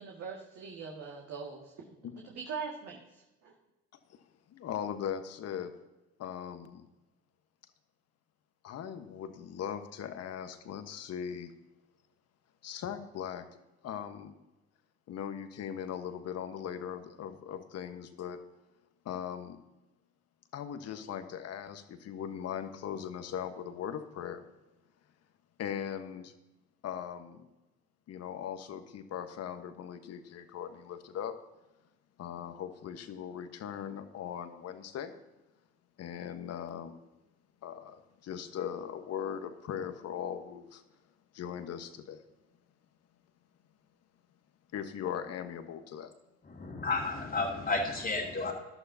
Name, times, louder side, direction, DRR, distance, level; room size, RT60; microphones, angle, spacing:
voice 1, 0.0-1.7 2.2-3.0 3.4-3.5, right 5 dB, 50° right, -2 dB, 2.1 m, -41 dB
voice 2, 4.5-5.7 6.2-6.9 8.6-11.5 12.6-13.5 13.8-14.3 15.1-18.4 19.0-19.6 20.5-24.5 25.6-26.3 26.8-27.5 28.1-31.3 32.2-35.1 36.0-36.9 37.6-40.8 41.3-42.2 44.7-46.1, left 9 dB, 50° left, 9 dB, 1.3 m, -39 dB
voice 3, 46.5-48.5, left 3 dB, 25° left, -5 dB, 2.4 m, -32 dB
15.5 x 11.5 x 2.8 m, 1.0 s
hypercardioid pair, 70°, 33 cm